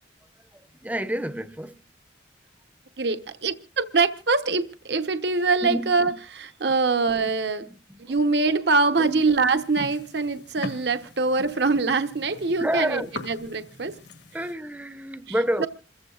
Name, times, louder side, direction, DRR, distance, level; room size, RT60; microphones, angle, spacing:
voice 1, 0.5-1.7 5.6-6.0 7.9-8.2 9.0-9.2 12.6-13.1 14.3-15.7, right 1 dB, 10° right, 0.6 m, -29 dB
voice 2, 3.0-7.7 8.0-14.0 15.6-15.7, right 4 dB, 65° right, 1.0 m, -24 dB
sound 1, 8.9-14.5, left 2 dB, 70° left, 1.5 m, -42 dB
28.0 x 15.0 x 2.4 m
head